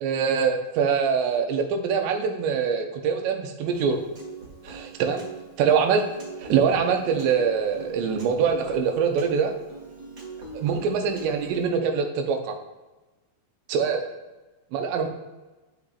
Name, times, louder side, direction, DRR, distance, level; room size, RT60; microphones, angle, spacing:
voice 1, 0.0-4.0 4.6-5.2 5.6-6.0 6.4-9.5 10.5-12.6 13.7-14.0 14.7-15.1, right 6 dB, 85° right, 5 dB, 3.0 m, -24 dB
Piano, 3.7-11.7, right 4 dB, 55° right, 0.9 m, -41 dB
12.0 x 5.1 x 2.4 m, 1.1 s
omnidirectional pair, 4.9 m